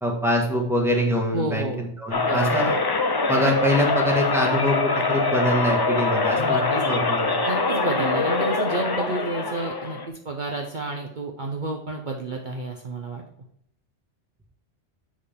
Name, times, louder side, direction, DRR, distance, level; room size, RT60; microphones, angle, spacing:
voice 1, 0.0-2.7 3.3-7.4, equal, ahead, 0 dB, 1.5 m, -24 dB
voice 2, 1.3-1.9 2.3-2.7 6.4-6.8 7.4-13.2, right 3 dB, 45° right, 1 dB, 0.9 m, -30 dB
sound 1, 2.1-10.1, left 3 dB, 30° left, 0.5 m, -24 dB
7.5 x 6.4 x 3.6 m, 0.73 s
omnidirectional pair, 1.2 m